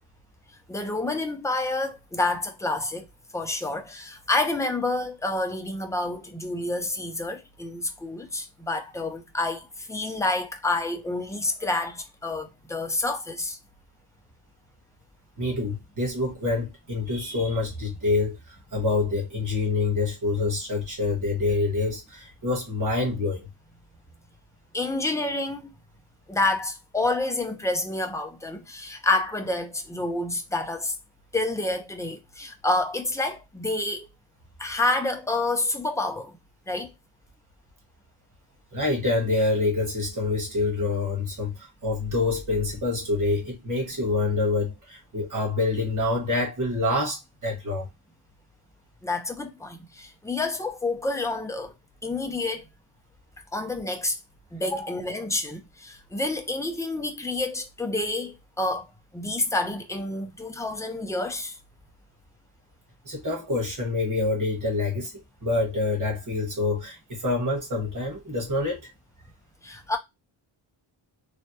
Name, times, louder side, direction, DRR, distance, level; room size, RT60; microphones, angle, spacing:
voice 1, 0.7-3.1 3.3-13.6 24.7-25.7 26.3-31.0 31.3-34.1 34.6-36.4 36.7-36.9 49.0-51.7 52.0-52.7 53.5-54.2 54.5-58.9 59.1-61.6 69.6-70.0, left 2 dB, 5° left, 0.4 m, -28 dB
voice 2, 15.4-18.4 18.7-23.5 38.7-47.9 63.0-65.1 65.4-68.8, left 3 dB, 40° right, 1.5 m, -26 dB
3.2 x 2.1 x 2.7 m
wide cardioid pair, 135°, 48 cm